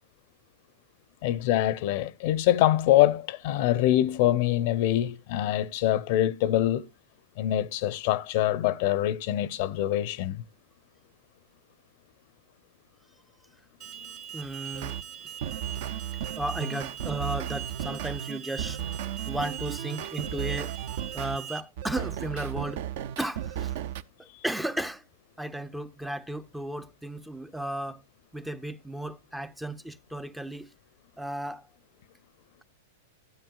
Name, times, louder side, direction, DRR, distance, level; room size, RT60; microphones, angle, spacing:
voice 1, 1.2-6.9 7.4-10.4, left 13 dB, 55° left, 0.5 m, -24 dB
Alarm, 13.8-21.6, right 9 dB, 40° right, 1.1 m, -41 dB
voice 2, 14.3-15.0 16.4-18.8 19.3-20.8 21.1-22.9 23.2-23.8 24.4-25.0 25.4-28.0 28.3-30.7 31.2-31.7, right 1 dB, 5° right, 0.4 m, -34 dB
sound 1, 14.7-15.0 15.4-21.4 21.8-24.0, right 10 dB, 60° right, 0.5 m, -34 dB
12.5 x 8.6 x 2.3 m
hypercardioid pair, 105°, 0 cm